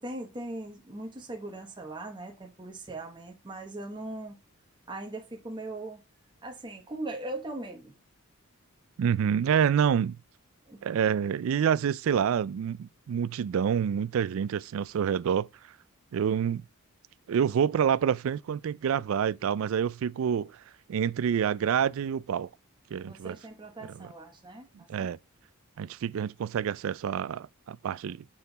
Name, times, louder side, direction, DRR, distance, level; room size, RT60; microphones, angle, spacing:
voice 1, 0.0-4.3 4.9-6.0 6.4-7.9 10.7-10.8 23.0-24.7, right 2 dB, 20° right, 1.1 m, -39 dB
voice 2, 9.0-10.2 10.8-15.5 16.1-16.6 17.3-20.6 20.9-22.5 22.9-23.4 24.9-25.2 25.8-28.2, right 8 dB, 65° right, 0.3 m, -27 dB
7.1 x 4.4 x 4.0 m
head